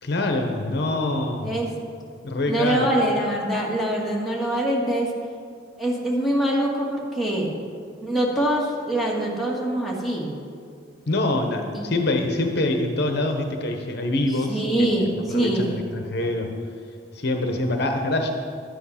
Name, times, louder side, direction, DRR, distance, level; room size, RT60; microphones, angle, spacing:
voice 1, 0.0-1.5 2.2-2.9 11.1-14.6 15.3-16.5 17.1-18.3, left 2 dB, 55° left, 4 dB, 0.9 m, -25 dB
voice 2, 2.5-5.1 5.8-7.5 8.0-10.3 11.7-11.8 14.5-15.8, right 1 dB, ahead, -4 dB, 1.9 m, -24 dB
11.5 x 9.1 x 5.7 m, 2.2 s
head